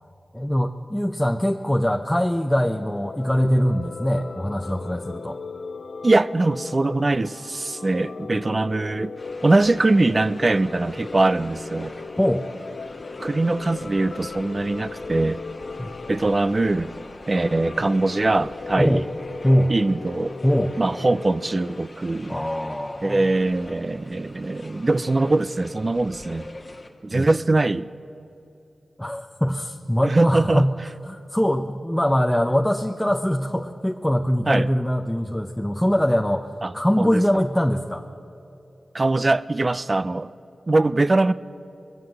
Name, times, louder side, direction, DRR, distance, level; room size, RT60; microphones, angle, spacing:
voice 1, 0.3-5.4 12.2-12.5 15.8-15.9 18.8-19.1 19.4-19.7 20.4-20.7 22.3-23.3 27.1-27.3 29.0-30.7 31.1-36.5 36.7-38.0, equal, 10° left, 2 dB, 0.6 m, -22 dB
sound 1, 2.5-21.9, left 4 dB, 65° left, 0.4 m, -38 dB
voice 2, 6.0-9.2 9.4-11.9 13.2-15.4 16.1-16.9 17.3-19.0 19.7-20.4 20.8-22.4 23.0-26.5 27.0-27.9 30.0-30.7 34.5-34.7 36.6-37.2 38.9-40.3 40.7-41.3, right 2 dB, 35° right, 16 dB, 0.4 m, -22 dB
sound 2, 9.2-26.9, left 2 dB, 45° left, 1.6 m, -42 dB
21.5 x 7.6 x 7.8 m, 2.7 s
cardioid pair, 55°, 0 cm